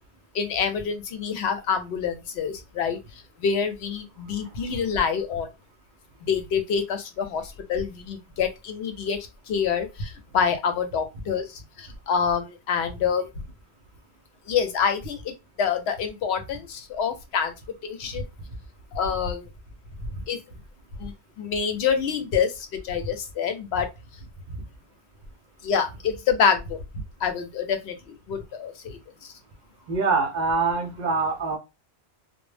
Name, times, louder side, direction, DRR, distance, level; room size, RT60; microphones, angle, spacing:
voice 1, 0.3-5.5 6.3-9.2 9.5-13.3 14.5-17.5 17.8-18.3 18.9-19.5 20.3-20.4 21.0-23.9 25.6-26.8 27.2-29.3, left 6 dB, 90° left, 0.9 m, -27 dB
voice 2, 29.9-31.6, right 4 dB, 55° right, 0.5 m, -24 dB
2.1 x 2.0 x 3.1 m
omnidirectional pair, 1.1 m